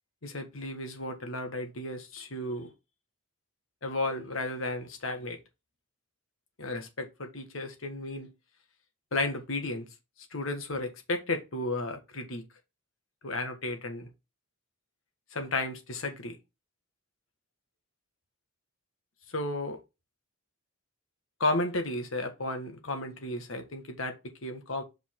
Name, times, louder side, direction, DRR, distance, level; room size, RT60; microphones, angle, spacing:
voice 1, 0.2-2.7 3.8-5.4 6.6-8.3 9.1-9.9 10.3-12.4 13.2-14.1 15.3-16.4 19.3-19.8 21.4-24.8, left 2 dB, 75° left, 1.5 m, -33 dB
5.6 x 4.8 x 3.7 m
head